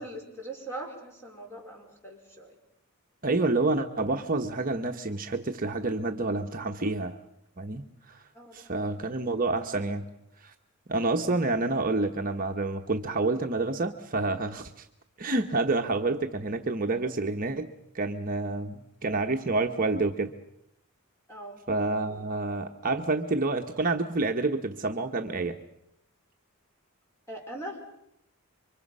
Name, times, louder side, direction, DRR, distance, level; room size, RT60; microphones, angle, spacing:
voice 1, 0.0-2.6 8.3-8.9 21.3-21.6 27.3-27.9, right 1 dB, 10° left, 1 dB, 4.9 m, -41 dB
voice 2, 3.2-7.2 7.6-8.2 8.5-10.0 10.4-10.5 10.9-14.8 15.2-17.7 17.9-20.3 21.7-25.6, right 3 dB, 40° right, 3 dB, 1.1 m, -28 dB
28.5 x 24.5 x 5.5 m, 0.79 s
head